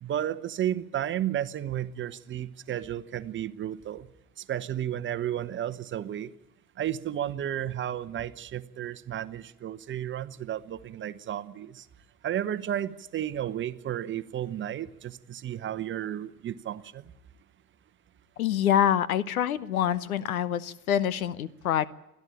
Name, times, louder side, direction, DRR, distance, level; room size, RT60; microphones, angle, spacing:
voice 1, 0.0-4.1 4.5-6.3 6.8-11.8 12.2-17.0, right 11 dB, 25° right, 13 dB, 0.9 m, -33 dB
voice 2, 18.4-21.9, left 10 dB, 70° left, 20 dB, 0.9 m, -26 dB
30.0 x 11.0 x 8.7 m, 0.93 s
figure-of-eight pair, 80°, 45 cm